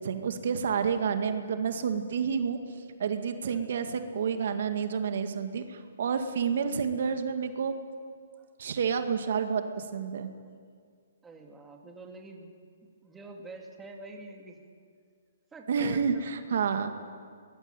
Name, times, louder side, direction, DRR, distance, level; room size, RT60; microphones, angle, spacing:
voice 1, 0.0-2.6 3.0-7.8 8.6-10.3 15.7-16.9, right 6 dB, 60° right, 7 dB, 2.1 m, -29 dB
voice 2, 11.2-12.5 12.8-14.6 15.5-16.2, right 2 dB, 10° right, 1 dB, 2.5 m, -46 dB
23.5 x 21.0 x 9.1 m, 2.1 s
hypercardioid pair, 155°, 0 cm